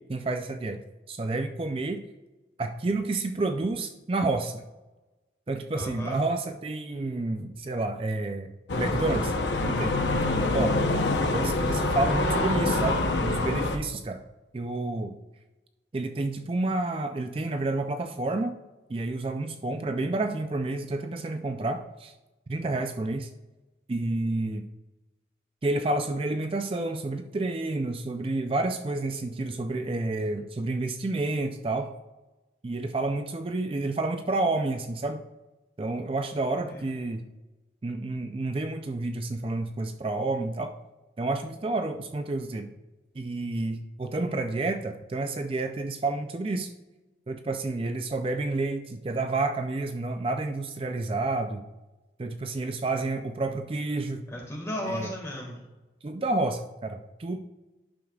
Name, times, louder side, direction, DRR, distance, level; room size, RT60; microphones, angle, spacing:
voice 1, 0.1-0.8 1.1-2.0 2.6-4.6 5.5-9.3 9.6-10.8 11.3-14.2 14.5-15.2 15.9-18.6 18.9-22.1 22.5-23.3 23.9-24.6 25.6-31.9 32.6-35.2 35.8-37.2 37.8-40.7 41.2-42.7 43.2-46.7 47.3-51.6 52.2-54.2 54.8-55.1 56.0-57.4, right 2 dB, 30° right, 6 dB, 0.4 m, -30 dB
voice 2, 5.7-6.2 36.5-36.9 54.3-55.6, left 1 dB, 15° left, -2 dB, 1.8 m, -35 dB
sound 1, 8.7-13.8, left 2 dB, 85° left, 0.8 m, -26 dB
11.0 x 6.4 x 2.4 m, 1.1 s
head